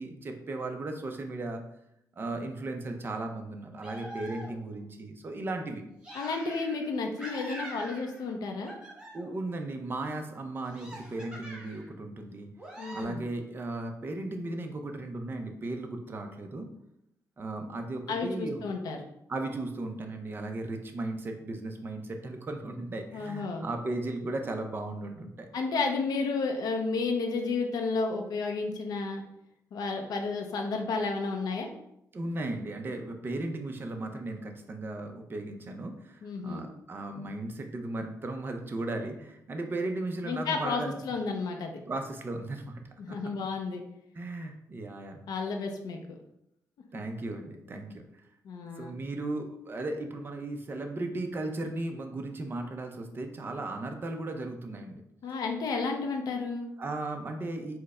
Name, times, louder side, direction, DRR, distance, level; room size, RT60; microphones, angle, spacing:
voice 1, 0.0-1.6 2.2-5.8 9.1-12.5 12.9-16.7 17.4-18.6 19.3-25.5 32.1-41.0 41.9-42.8 43.1-43.2 44.1-45.2 46.9-48.0 48.6-55.0 56.8-57.8, right 2 dB, 35° right, 4 dB, 0.6 m, -36 dB
sound 1, 3.8-4.8 6.0-6.9 7.2-8.3 8.6-9.4 10.7-11.9 12.6-13.0, right 1 dB, 10° right, 1.0 m, -44 dB
voice 2, 6.1-8.7 12.8-13.2 18.1-19.0 23.1-23.7 25.5-29.2 29.7-31.7 36.2-36.6 40.2-41.8 43.0-43.8 45.3-46.0 48.4-48.9 55.2-56.7, left 4 dB, 80° left, 3 dB, 0.6 m, -32 dB
4.6 x 2.1 x 4.7 m, 0.79 s
cardioid pair, 120°, 7 cm